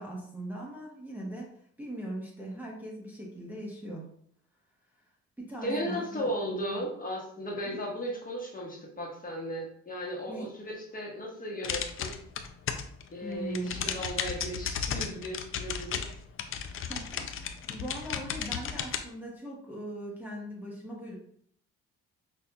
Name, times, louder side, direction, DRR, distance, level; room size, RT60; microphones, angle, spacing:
voice 1, 0.0-1.5 1.8-4.1 5.4-6.8 7.6-7.8 10.3-10.5 13.2-13.9 16.9-21.2, right 1 dB, 5° right, -4 dB, 0.9 m, -40 dB
voice 2, 5.6-12.2 13.1-16.0, equal, 30° left, -2 dB, 1.1 m, -36 dB
sound 1, 11.6-13.0 13.3-19.0, left 7 dB, 45° left, 0.4 m, -34 dB
5.5 x 2.5 x 2.3 m, 0.63 s
cardioid pair, 90°, 30 cm